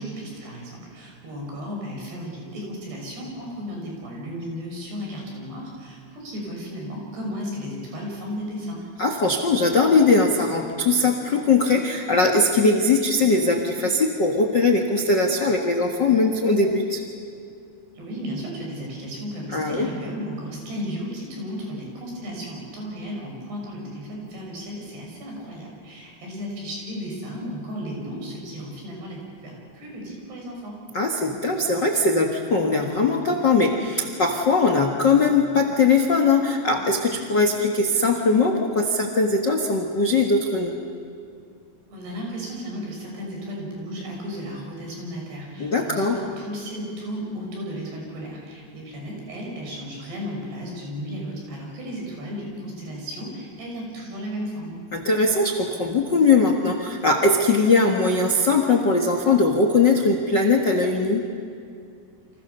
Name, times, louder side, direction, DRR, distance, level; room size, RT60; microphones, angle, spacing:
voice 1, 0.0-8.8 18.0-30.8 41.9-54.8, equal, 70° right, -1 dB, 8.4 m, -34 dB
voice 2, 9.0-17.0 19.5-19.9 30.9-40.7 45.6-46.2 54.9-61.2, left 3 dB, 70° left, 2 dB, 1.0 m, -20 dB
30.0 x 26.5 x 7.0 m, 2.5 s
omnidirectional pair, 5.0 m